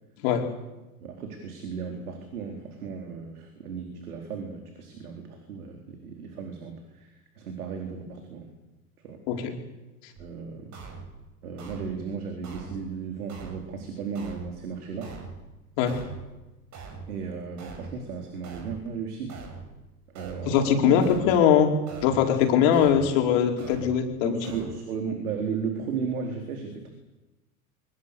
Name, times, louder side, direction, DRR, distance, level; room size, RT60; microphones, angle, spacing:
voice 1, 1.0-7.1 7.4-8.5 9.0-9.2 10.2-10.7 11.4-15.2 17.1-19.4 20.1-20.9 24.2-26.9, right 5 dB, 75° right, 3 dB, 4.5 m, -35 dB
sound 1, 10.2-10.3 10.7-11.1 11.6-12.0 12.4-12.9 13.3-13.7 14.1-14.6 15.0-15.4 15.9-16.3 16.7-17.1 17.6-18.0 18.4-18.9 19.3-19.7 20.1-20.6 21.0-21.4 21.9-22.3 22.7-23.1 23.6-24.0 24.4-24.7, right 5 dB, 40° right, 7.2 m, -42 dB
voice 2, 20.4-24.4, left 8 dB, 55° left, 3 dB, 4.9 m, -21 dB
24.5 x 23.5 x 7.0 m, 1.1 s
hypercardioid pair, 90°, 45 cm